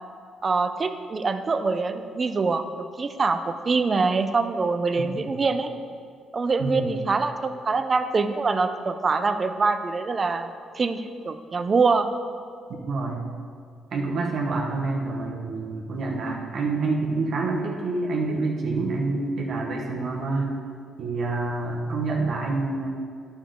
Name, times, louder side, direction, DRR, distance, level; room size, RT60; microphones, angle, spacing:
voice 1, 0.4-2.7 3.0-5.7 6.3-12.1, right 4 dB, 35° right, 9 dB, 0.5 m, -24 dB
voice 2, 6.6-6.9 12.8-13.2 13.9-20.6 21.0-22.9, right 3 dB, 65° right, -1 dB, 1.2 m, -27 dB
10.0 x 7.0 x 3.8 m, 2.3 s
cardioid pair, 90°, 0 cm